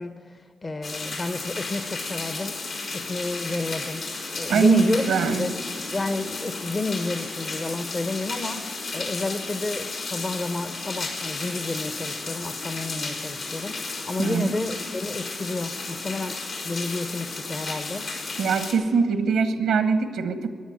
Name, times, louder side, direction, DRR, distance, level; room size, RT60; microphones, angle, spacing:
voice 1, 0.0-2.6 2.9-4.1 4.3-5.5 5.9-18.1, left 2 dB, 40° left, 8 dB, 1.1 m, -31 dB
sound 1, 0.8-18.7, left 3 dB, 70° left, 3.8 m, -33 dB
voice 2, 4.5-5.5 14.2-14.5 18.4-20.5, right 5 dB, 85° right, 9 dB, 1.1 m, -22 dB
15.0 x 10.0 x 8.8 m, 2.1 s
supercardioid pair, 50°, 0 cm